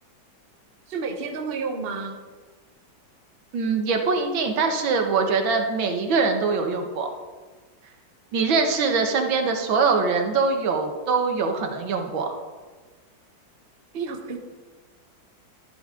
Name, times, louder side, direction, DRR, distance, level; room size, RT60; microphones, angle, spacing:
voice 1, 0.9-2.2 13.9-14.4, right 4 dB, 35° right, 4 dB, 1.1 m, -30 dB
voice 2, 3.5-7.1 8.3-12.3, right 4 dB, 85° right, 4 dB, 2.0 m, -23 dB
13.0 x 11.0 x 3.8 m, 1.4 s
omnidirectional pair, 2.1 m